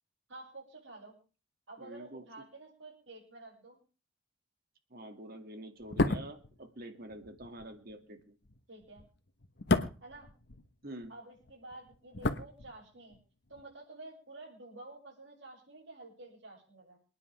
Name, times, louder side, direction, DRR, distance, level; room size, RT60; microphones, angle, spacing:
voice 1, 0.3-1.1 1.7-3.8 8.7-9.0 10.0-10.3 11.1-13.2 13.5-17.0, right 2 dB, 80° right, -6 dB, 6.5 m, -50 dB
voice 2, 1.8-2.3 4.9-8.4 10.8-11.1, right 1 dB, 55° right, 6 dB, 2.4 m, -47 dB
sound 1, 5.8-11.1 11.4-13.2 13.5-13.6, left 2 dB, 60° left, 1.1 m, -34 dB
27.5 x 9.9 x 3.5 m, 0.36 s
head